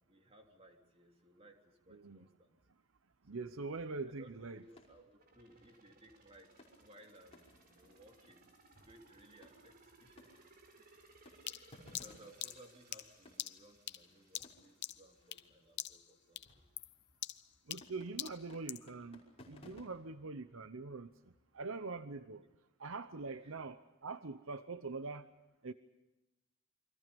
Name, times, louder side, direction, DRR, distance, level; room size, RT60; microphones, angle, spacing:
voice 1, 0.0-2.6 3.3-3.7 4.0-8.4 8.8-10.2 11.5-16.6 22.1-22.5 23.4-23.5, right 1 dB, 30° right, 3.4 m, -61 dB
voice 2, 3.3-4.6 17.7-21.1 21.5-22.4 22.8-25.3 25.6-25.7, right 3 dB, 70° right, 0.8 m, -43 dB
sound 1, 4.1-21.9, left 1 dB, 30° left, 5.6 m, -63 dB
sound 2, 5.2-15.9 16.3-16.4, right 3 dB, 45° right, 4.1 m, -65 dB
sound 3, 11.5-15.5 15.8-16.1 16.4-18.9, left 13 dB, 55° left, 0.8 m, -44 dB
29.5 x 24.0 x 5.3 m
head